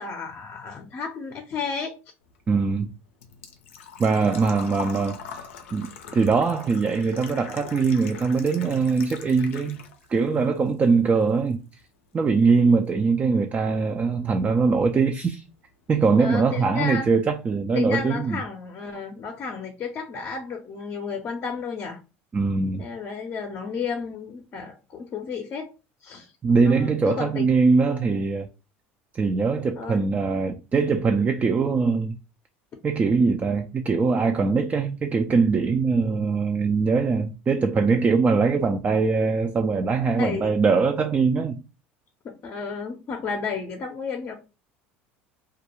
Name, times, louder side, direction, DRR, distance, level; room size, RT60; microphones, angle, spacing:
voice 1, 0.0-1.9 4.2-4.3 16.2-17.1 17.7-22.0 22.8-25.7 26.0-26.3 26.6-27.4 29.8-30.0 40.2-40.5 42.2-44.3, left 5 dB, 40° left, 0.6 m, -32 dB
Engine / Trickle dribble / Fill (with liquid), 2.3-10.2 10.5-11.5 11.8-11.9 13.8-13.9 14.1-14.4 14.8-14.9 15.1-15.2, left 7 dB, 85° left, 0.5 m, -42 dB
voice 2, 2.5-2.9 4.0-5.2 5.7-5.9 6.1-9.8 10.1-11.6 12.1-15.4 15.9-18.4 22.3-22.9 26.4-28.5 29.1-32.2 32.8-41.6, right 4 dB, 25° right, 0.3 m, -22 dB
2.3 x 2.1 x 3.0 m
hypercardioid pair, 90°, 7 cm